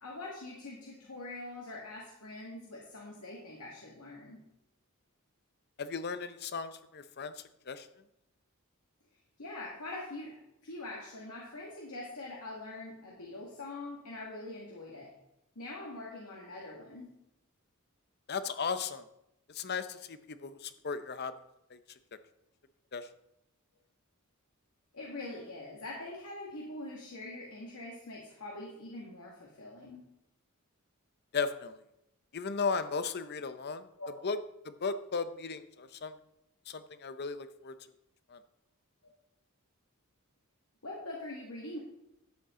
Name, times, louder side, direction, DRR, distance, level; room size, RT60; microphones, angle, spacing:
voice 1, 0.0-4.4 9.4-15.1 15.6-17.2 24.9-30.0 34.0-34.3 40.8-41.8, left 2 dB, 90° left, -3 dB, 1.9 m, -44 dB
voice 2, 5.8-7.3 7.7-7.9 18.3-19.0 19.5-21.3 21.7-21.8 22.9-23.1 31.3-31.8 32.3-33.8 34.2-34.4 34.6-36.1 36.7-37.7 38.3-38.4, left 5 dB, 50° left, 12 dB, 0.7 m, -36 dB
12.5 x 8.3 x 3.8 m, 0.83 s
head